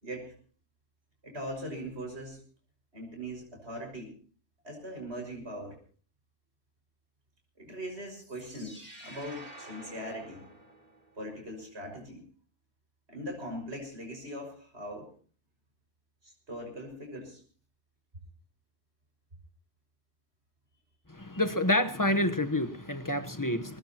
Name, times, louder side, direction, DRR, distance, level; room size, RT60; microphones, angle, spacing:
voice 1, 0.0-0.3 1.2-2.4 2.9-4.1 4.6-5.8 7.6-10.4 11.1-12.2 13.1-15.1 16.2-17.4, equal, 65° right, 6.3 m, -40 dB
sound 1, 8.1-11.2, right 1 dB, 35° right, 5.2 m, -49 dB
voice 2, 21.1-23.8, left 1 dB, 15° left, 1.1 m, -28 dB
22.5 x 19.5 x 3.0 m
omnidirectional pair, 1.2 m